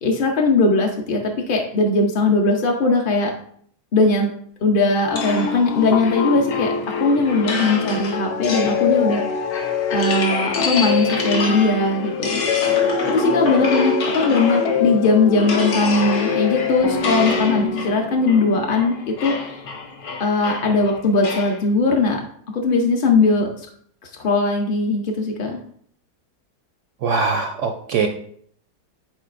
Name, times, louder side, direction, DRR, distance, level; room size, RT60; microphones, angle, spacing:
voice 1, 0.0-3.3 3.9-4.3 4.6-9.2 9.9-12.4 13.1-19.6 20.2-22.2 22.5-23.5 24.0-25.6, left 3 dB, 50° left, 1 dB, 0.6 m, -19 dB
sound 1, 5.1-20.1, left 7 dB, 85° left, 1.3 m, -25 dB
sound 2, 5.2-15.0 15.4-21.6, left 3 dB, 65° left, 1.4 m, -28 dB
voice 2, 27.0-28.1, right 4 dB, 70° right, 4 dB, 0.7 m, -21 dB
9.1 x 4.2 x 2.5 m, 0.62 s
omnidirectional pair, 1.7 m